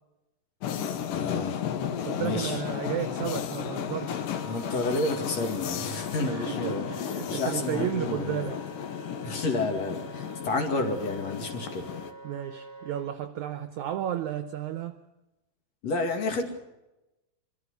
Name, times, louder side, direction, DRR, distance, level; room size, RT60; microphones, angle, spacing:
sound 1, 0.6-12.1, left 8 dB, 70° left, 2.7 m, -34 dB
voice 1, 1.1-1.6 2.2-2.6 4.4-8.5 9.2-11.9 15.8-16.4, left 3 dB, 50° left, 4 dB, 3.3 m, -30 dB
voice 2, 2.1-4.3 6.2-8.6 12.2-15.0, right 11 dB, 75° right, 9 dB, 1.8 m, -33 dB
Wind instrument woodwind instrument, 3.8-13.1, right 1 dB, 5° left, 2.1 m, -46 dB
24.5 x 14.0 x 8.1 m, 0.99 s
omnidirectional pair, 4.2 m